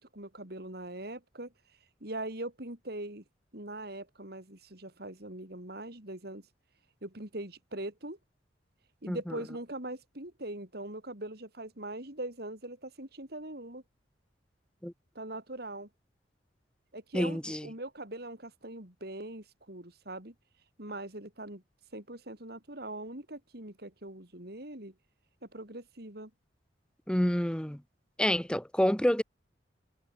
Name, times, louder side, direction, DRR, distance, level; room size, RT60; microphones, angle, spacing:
voice 1, 0.0-1.5 2.0-3.2 3.5-6.5 7.0-8.2 9.0-13.8 15.1-15.9 16.9-20.3 20.8-21.6 21.9-24.9 25.4-26.3, right 1 dB, 60° right, 4.6 m, -41 dB
voice 2, 17.1-17.7 27.1-27.8 28.2-29.2, equal, 5° left, 0.8 m, -28 dB
head